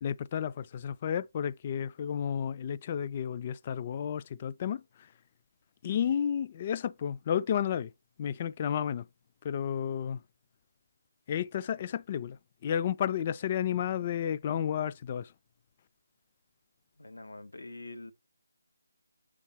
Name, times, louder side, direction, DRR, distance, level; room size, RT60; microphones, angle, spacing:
voice 1, 0.0-4.8 5.8-7.9 8.2-9.1 9.4-10.2 11.3-12.4 12.6-15.3, left 9 dB, 30° left, 0.3 m, -32 dB
voice 2, 17.0-18.1, left 2 dB, 90° left, 1.1 m, -45 dB
7.3 x 3.6 x 4.3 m
figure-of-eight pair, 165°, 0 cm